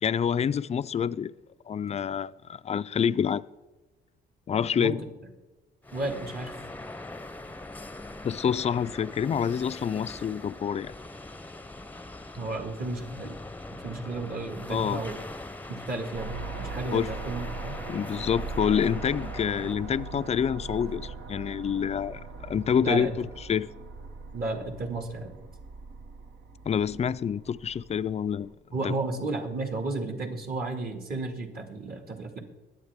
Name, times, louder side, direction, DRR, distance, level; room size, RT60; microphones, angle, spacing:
voice 1, 0.0-1.3 1.7-3.4 4.5-5.0 8.2-10.9 14.7-15.0 16.9-17.1 17.9-23.7 26.7-28.5 28.8-29.0, left 8 dB, 35° left, 0.4 m, -27 dB
sound 1, 5.8-21.0, left 2 dB, 10° left, 0.7 m, -42 dB
voice 2, 5.9-6.5 12.3-13.4 13.8-15.2 15.7-17.8 22.8-23.1 24.3-25.3 28.7-32.4, right 2 dB, 50° right, 2.1 m, -33 dB
sound 2, 16.1-28.5, right 3 dB, 70° right, 1.4 m, -40 dB
22.0 x 8.1 x 3.6 m
cardioid pair, 90°, 20 cm